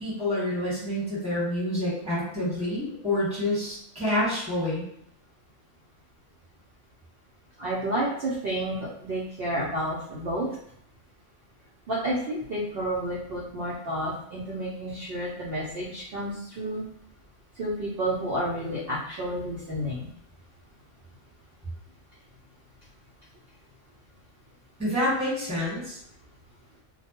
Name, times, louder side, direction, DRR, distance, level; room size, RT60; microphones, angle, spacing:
voice 1, 0.0-4.8 24.8-26.0, left 1 dB, 5° right, -8 dB, 1.2 m, -28 dB
voice 2, 7.6-10.5 11.9-16.8 17.6-20.1, right 1 dB, 60° right, -6 dB, 0.7 m, -30 dB
2.2 x 2.1 x 2.9 m, 0.72 s
omnidirectional pair, 1.3 m